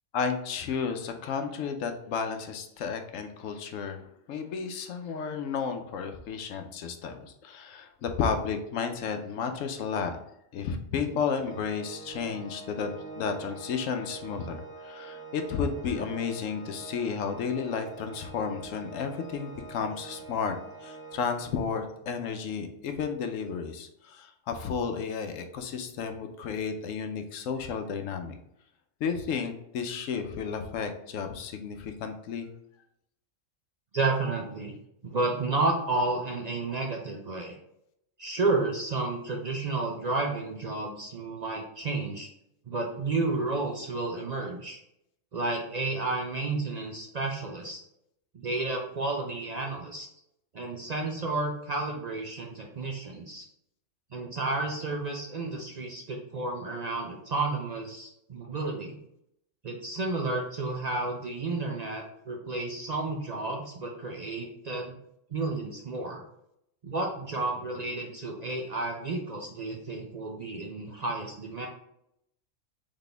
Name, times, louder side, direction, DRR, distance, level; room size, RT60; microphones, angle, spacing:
voice 1, 0.1-4.0 4.3-10.2 10.5-20.6 20.8-28.4 29.0-32.5, left 6 dB, 90° left, 6 dB, 1.0 m, -32 dB
Organ, 11.3-22.1, right 4 dB, 85° right, 1.6 m, -45 dB
voice 2, 33.9-34.7 35.0-37.6 38.2-42.3 42.7-44.8 45.3-47.8 48.3-50.1 50.5-53.5 54.1-59.0 59.6-65.0 65.3-66.2 66.8-71.7, right 3 dB, 50° right, 0 dB, 0.5 m, -31 dB
4.1 x 3.6 x 3.3 m, 0.77 s
omnidirectional pair, 1.3 m